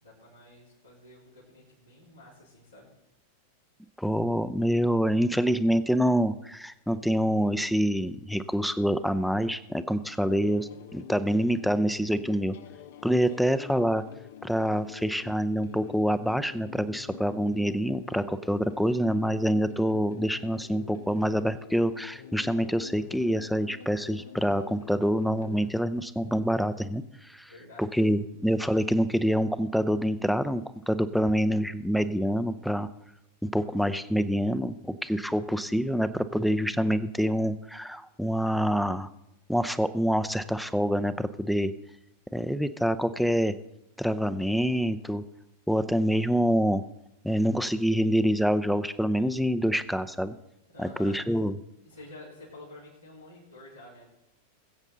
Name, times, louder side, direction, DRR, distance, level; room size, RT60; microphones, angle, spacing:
voice 1, 0.0-2.9 13.3-13.4 27.5-28.0 50.7-51.2 51.8-54.1, left 2 dB, 85° left, -10 dB, 4.1 m, -49 dB
voice 2, 4.0-12.6 13.0-14.0 14.4-27.5 27.8-32.9 33.4-39.1 39.5-41.7 42.3-43.5 44.0-45.2 45.7-46.8 47.2-50.4 50.8-51.5, equal, ahead, 13 dB, 0.6 m, -26 dB
sound 1, 10.3-25.7, left 8 dB, 55° left, 0.6 m, -46 dB
20.5 x 8.3 x 4.0 m, 0.86 s
figure-of-eight pair, 90°, 0 cm